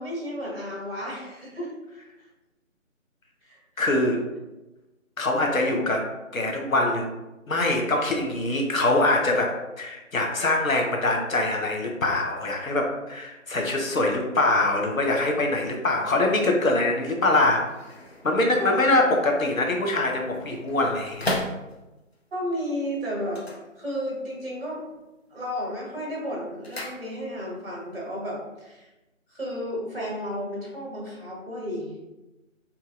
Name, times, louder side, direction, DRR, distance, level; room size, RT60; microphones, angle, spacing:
voice 1, 0.0-1.7 3.4-3.6 3.9-4.1 5.4-5.8 18.6-18.8 22.3-23.5 23.8-24.8 25.3-28.9 29.3-31.9, equal, 45° right, -3 dB, 1.5 m, -32 dB
voice 2, 3.8-4.2 5.2-6.0 6.3-7.1 7.5-9.5 9.8-17.6 18.2-21.3, left 2 dB, 85° left, 1 dB, 1.0 m, -23 dB
sound 1, 17.2-22.2 23.2-24.4 24.6-25.2 25.5-27.6 27.9-28.0, left 1 dB, 50° left, 0.6 m, -37 dB
4.6 x 2.7 x 2.4 m, 1.0 s
figure-of-eight pair, 175°, 40 cm